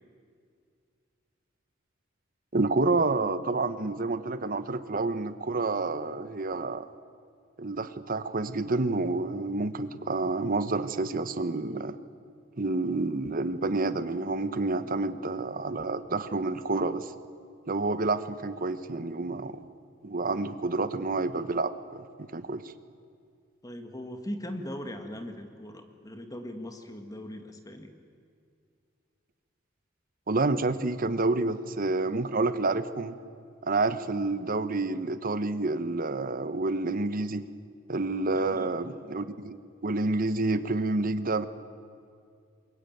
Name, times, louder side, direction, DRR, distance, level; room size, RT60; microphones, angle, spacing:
voice 1, 2.5-6.9 7.6-12.0 12.6-17.1 17.7-19.6 20.0-22.6 30.3-33.2 33.6-37.4 37.9-39.6 39.8-41.5, right 3 dB, 45° right, 12 dB, 1.1 m, -29 dB
voice 2, 23.6-27.9 38.3-38.7, left 1 dB, 20° left, 6 dB, 1.8 m, -40 dB
23.0 x 21.5 x 9.3 m, 2.3 s
head